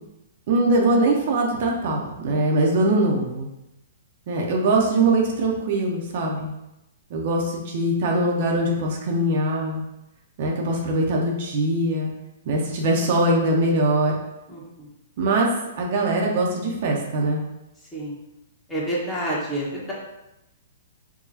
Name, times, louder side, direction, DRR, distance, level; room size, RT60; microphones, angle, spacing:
voice 1, 0.5-3.5 4.3-6.5 7.1-9.8 10.4-12.1 12.5-14.1 15.2-15.5 15.8-17.4, right 2 dB, 55° right, -1 dB, 0.7 m, -22 dB
voice 2, 14.5-14.9 17.9-18.1 18.7-19.9, right 1 dB, 15° left, -6 dB, 1.1 m, -28 dB
4.8 x 2.3 x 2.7 m, 0.91 s
hypercardioid pair, 125°, 0 cm